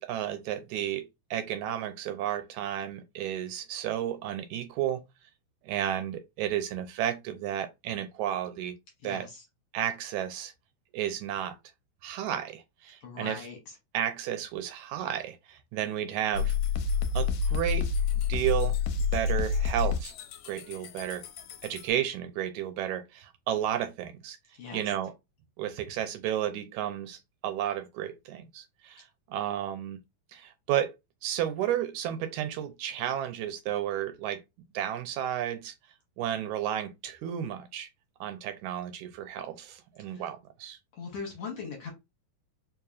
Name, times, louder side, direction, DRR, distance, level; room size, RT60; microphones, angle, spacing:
voice 1, 0.0-5.0 5.7-8.8 9.0-9.3 9.7-10.5 10.9-11.6 12.0-13.5 13.9-16.5 17.1-17.9 18.3-18.8 19.1-20.1 20.5-21.2 21.6-24.4 24.7-25.1 25.6-30.0 30.3-30.9 31.2-34.4 34.7-35.7 36.2-37.9 38.2-40.8, right 11 dB, 80° right, 1.8 m, -32 dB
voice 2, 9.0-9.4 13.0-13.6 24.6-24.8 40.1-40.2 40.9-41.9, left 5 dB, 65° left, 1.8 m, -39 dB
sound 1, 16.3-21.9, left 5 dB, 80° left, 1.8 m, -29 dB
4.8 x 2.8 x 2.4 m
omnidirectional pair, 3.5 m